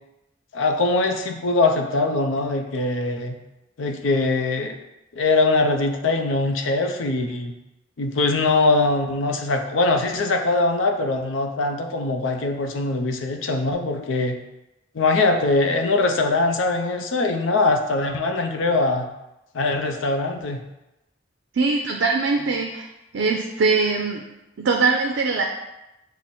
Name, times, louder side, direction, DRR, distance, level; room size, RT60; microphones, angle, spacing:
voice 1, 0.5-3.4 3.8-4.8 5.2-7.5 8.0-14.4 14.9-19.1 19.5-20.6, left 3 dB, 85° left, 5 dB, 0.5 m, -22 dB
voice 2, 21.5-22.9 23.1-24.2 24.6-25.4, right 4 dB, 70° right, 2 dB, 0.4 m, -21 dB
6.1 x 2.1 x 4.1 m, 0.95 s
head